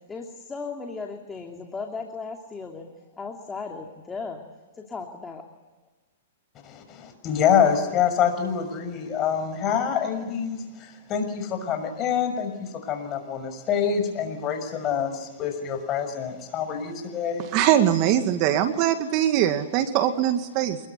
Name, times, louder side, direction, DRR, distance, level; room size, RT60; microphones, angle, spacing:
voice 1, 0.1-2.9 3.2-4.4 4.7-5.4, left 4 dB, 10° left, 2 dB, 2.8 m, -36 dB
voice 2, 6.6-17.5, left 7 dB, 30° left, 7 dB, 6.4 m, -26 dB
voice 3, 17.5-20.8, right 11 dB, 40° right, 8 dB, 2.2 m, -22 dB
27.5 x 21.5 x 9.7 m, 1.2 s
hypercardioid pair, 140°, 0 cm